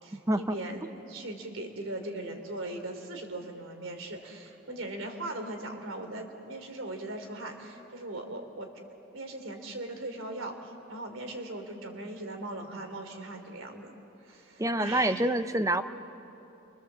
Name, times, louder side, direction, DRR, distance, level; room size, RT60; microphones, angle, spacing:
voice 1, 0.0-8.7 9.1-13.9 14.2-15.3, right 1 dB, 90° right, 5 dB, 3.1 m, -39 dB
voice 2, 14.6-15.8, right 1 dB, 15° right, 10 dB, 0.7 m, -26 dB
29.5 x 24.0 x 7.5 m, 2.9 s
head